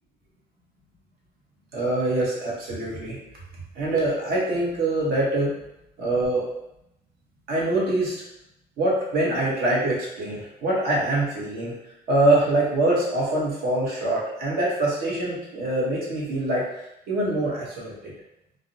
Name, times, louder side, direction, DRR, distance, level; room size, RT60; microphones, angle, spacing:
voice 1, 1.7-3.2 3.8-5.5 6.0-6.4 7.5-8.1 8.8-11.7 12.1-16.6 17.1-17.9, right 1 dB, 70° right, -4 dB, 0.9 m, -24 dB
2.5 x 2.0 x 2.6 m, 0.83 s
cardioid pair, 110°, 17 cm